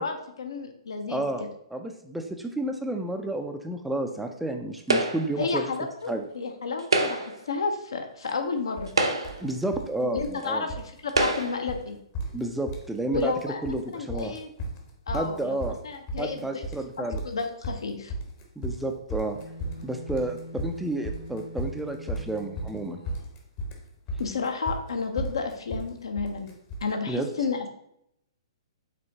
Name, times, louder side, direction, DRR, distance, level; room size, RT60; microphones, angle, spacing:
voice 1, 0.0-1.2 5.4-8.9 10.0-12.0 13.1-13.6 13.9-14.5 15.1-15.6 15.8-16.7 17.0-18.1 24.2-26.5 26.8-27.7, left 4 dB, 65° left, 6 dB, 0.7 m, -31 dB
voice 2, 1.1-5.6 6.1-6.3 9.4-10.7 12.3-14.4 15.1-15.8 16.2-17.2 18.6-19.4 19.8-23.0 27.1-27.3, right 1 dB, 5° right, 4 dB, 0.3 m, -31 dB
sound 1, 4.9-5.4 6.8-7.4 8.3-8.4 8.9-9.5 10.4-10.5 11.1-11.7, right 2 dB, 70° right, 0.6 m, -26 dB
sound 2, 8.8-8.9 9.2-9.9 10.2-10.9 11.2-11.4 11.7-11.8 12.1-12.9 13.1-13.8 14.1-26.9, right 1 dB, 35° left, 0.9 m, -35 dB
sound 3, 19.3-23.2, equal, 90° left, 1.5 m, -44 dB
5.2 x 3.5 x 2.7 m, 0.74 s
figure-of-eight pair, 115°, 3 cm